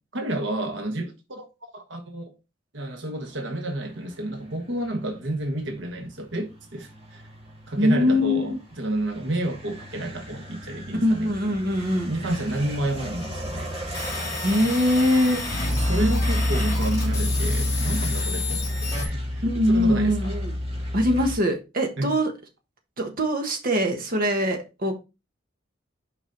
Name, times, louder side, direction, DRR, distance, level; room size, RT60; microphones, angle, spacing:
voice 1, 0.1-1.4 1.7-2.3 2.7-7.2 7.7-11.3 12.1-13.7 14.6-14.7 15.6-20.3 22.0-22.2, right 1 dB, 80° right, 1.3 m, -30 dB
sound 1, 4.8-21.4, left 1 dB, 30° right, 2.4 m, -30 dB
voice 2, 7.8-8.6 11.0-12.1 14.4-15.4 19.4-20.5 20.9-22.3 23.0-25.0, equal, 50° right, 1.4 m, -22 dB
sound 2, 13.9-19.0, left 4 dB, 15° left, 3.4 m, -32 dB
5.9 x 5.3 x 4.0 m
head